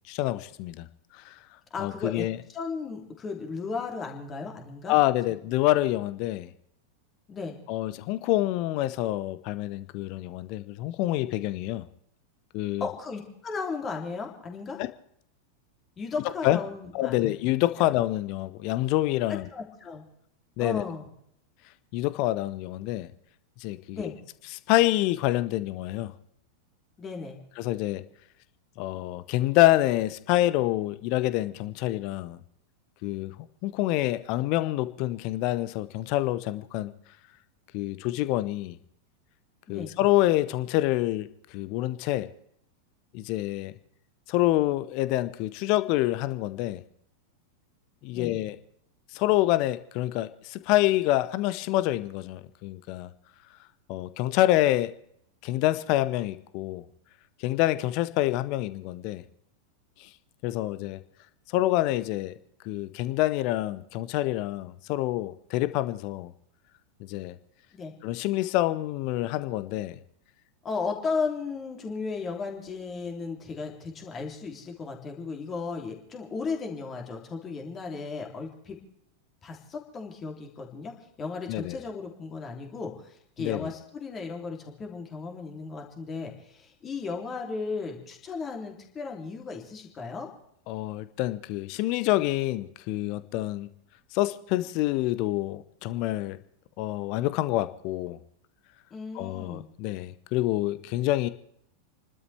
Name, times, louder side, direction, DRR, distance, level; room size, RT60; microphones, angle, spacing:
voice 1, 0.1-0.9 1.1-1.4 1.8-2.4 4.9-6.5 7.7-11.9 12.5-12.9 14.8-14.9 16.4-16.6 16.9-19.5 20.6-20.8 21.9-23.1 23.6-24.1 24.7-26.1 27.6-28.0 28.8-32.4 33.0-33.3 33.6-36.9 37.7-38.8 39.7-42.3 43.1-43.7 44.3-46.8 48.0-48.6 49.1-53.1 53.9-54.9 55.4-56.8 57.4-59.2 60.0-60.1 60.4-61.0 61.5-62.3 62.6-66.3 67.0-67.4 68.0-70.0 81.5-81.8 83.4-83.7 90.7-93.7 94.1-96.4 96.8-98.2 99.1-101.3, left 16 dB, 45° left, 14 dB, 0.9 m, -27 dB
voice 2, 1.7-5.0 7.3-7.6 12.8-14.8 16.0-17.3 17.8-17.9 19.5-20.0 20.6-21.1 23.9-24.1 27.0-27.4 39.7-39.9 48.1-48.4 67.7-67.9 70.6-78.8 79.4-80.9 81.2-90.3 98.9-99.6, left 4 dB, 25° left, 1 dB, 3.1 m, -35 dB
30.0 x 12.5 x 3.4 m, 0.70 s
figure-of-eight pair, 90°, 0 cm